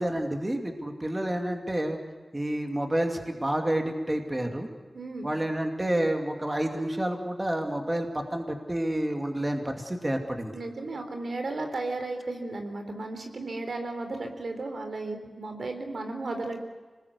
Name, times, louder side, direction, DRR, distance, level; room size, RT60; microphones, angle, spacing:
voice 1, 0.0-2.0 2.3-4.7 5.2-10.5, right 1 dB, 20° right, 4 dB, 2.6 m, -29 dB
voice 2, 4.9-5.3 10.5-16.6, right 2 dB, 75° right, 5 dB, 3.7 m, -34 dB
26.0 x 20.5 x 8.3 m, 1.3 s
wide cardioid pair, 95°, 0 cm